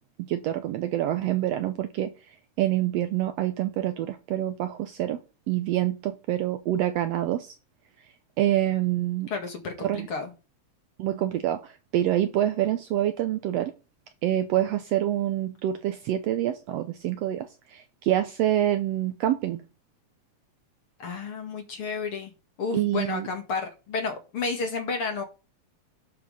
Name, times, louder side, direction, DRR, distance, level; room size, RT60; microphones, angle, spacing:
voice 1, 0.2-2.1 2.6-5.2 5.5-7.5 8.4-9.3 9.8-10.1 11.0-13.7 14.2-19.6 22.7-23.3, right 12 dB, 75° right, 1.6 m, -26 dB
voice 2, 9.3-10.3 21.0-22.3 22.6-25.2, left 4 dB, 50° left, 2.5 m, -31 dB
11.5 x 5.9 x 5.5 m
omnidirectional pair, 3.3 m